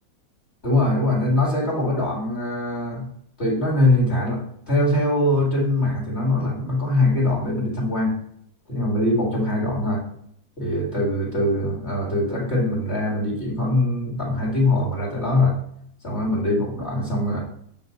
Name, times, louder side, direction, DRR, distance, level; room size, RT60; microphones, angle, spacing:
voice 1, 0.6-3.1 3.4-8.2 8.7-10.0 10.6-15.6 16.0-17.4, left 1 dB, 35° left, -3 dB, 2.1 m, -22 dB
6.2 x 5.2 x 5.5 m, 0.70 s
omnidirectional pair, 2.0 m